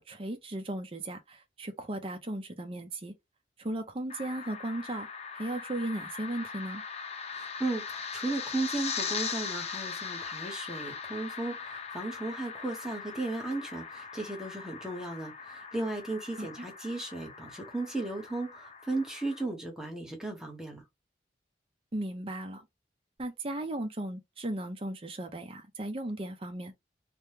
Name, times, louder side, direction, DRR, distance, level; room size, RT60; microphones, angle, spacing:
voice 1, 0.0-3.1 3.6-5.1 5.3-6.8 16.4-16.7 21.9-22.6 23.2-26.7, right 1 dB, 30° right, 0.6 m, -36 dB
sound 1, 4.1-19.4, left 5 dB, 35° left, 0.5 m, -40 dB
voice 2, 7.3-20.8, right 2 dB, 5° right, 0.9 m, -35 dB
3.4 x 2.2 x 2.8 m
head